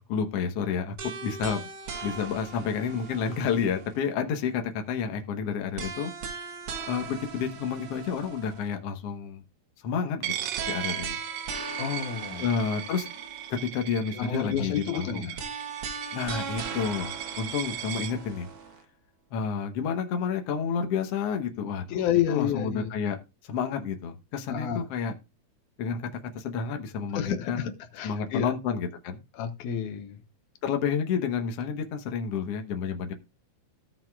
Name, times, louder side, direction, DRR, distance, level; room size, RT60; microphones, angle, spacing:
voice 1, 0.1-1.0 1.2-1.7 2.0-6.1 6.9-9.4 9.8-10.3 10.7-11.2 12.4-13.1 13.6-15.3 16.1-18.5 19.3-22.0 22.3-23.2 23.5-25.1 25.8-26.1 26.4-27.7 28.0-29.2 30.6-33.1, left 6 dB, 60° left, 1.9 m, -30 dB
sound 1, 1.0-4.1 5.8-8.7 10.6-13.7 15.4-18.8, right 5 dB, 60° right, 1.9 m, -39 dB
Coin (dropping), 10.2-18.1, right 12 dB, 75° right, 1.9 m, -37 dB
voice 2, 11.8-12.5 14.1-15.4 21.9-22.9 24.5-24.9 27.1-28.5 29.3-30.2, left 9 dB, 80° left, 2.4 m, -30 dB
17.0 x 5.8 x 2.3 m
omnidirectional pair, 3.4 m